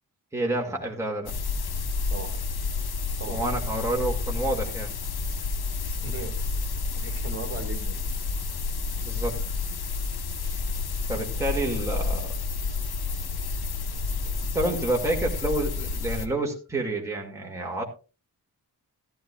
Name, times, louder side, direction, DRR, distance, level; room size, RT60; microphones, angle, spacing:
voice 1, 0.3-1.3 3.2-4.9 9.0-9.5 10.5-10.6 11.1-12.4 14.5-17.8, right 2 dB, 5° right, -1 dB, 2.3 m, -29 dB
sound 1, 1.3-16.3, left 4 dB, 70° left, 1.2 m, -30 dB
voice 2, 5.8-6.6 7.0-8.0, right 4 dB, 35° right, 4 dB, 2.5 m, -38 dB
14.5 x 13.0 x 2.4 m, 0.32 s
wide cardioid pair, 160°, 39 cm